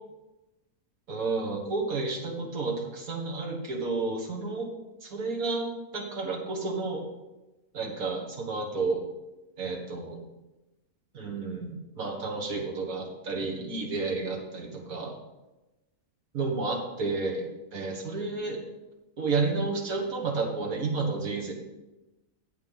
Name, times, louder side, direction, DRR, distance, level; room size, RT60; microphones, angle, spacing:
voice 1, 1.1-4.7 5.0-5.7 5.9-7.0 7.7-9.0 9.6-10.2 11.1-15.2 16.3-17.4 17.7-18.6 19.2-21.5, right 3 dB, 85° right, 1 dB, 2.1 m, -31 dB
8.9 x 7.8 x 5.6 m, 1.0 s
omnidirectional pair, 1.5 m